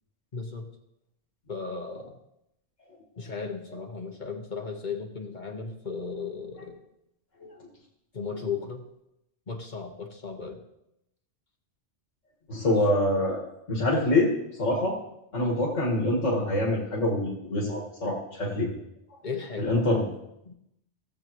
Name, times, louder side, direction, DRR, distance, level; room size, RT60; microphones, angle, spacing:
voice 1, 0.3-0.6 1.5-2.1 3.2-6.8 8.1-8.8 9.5-10.6 15.4-15.6 19.2-19.8 20.5-20.6, left 5 dB, 40° left, 2 dB, 1.3 m, -36 dB
voice 2, 12.5-13.4 13.7-14.3 14.6-15.0 15.3-18.7 19.6-20.1, left 1 dB, 80° left, -3 dB, 2.1 m, -25 dB
17.5 x 7.7 x 3.0 m, 0.83 s
omnidirectional pair, 1.3 m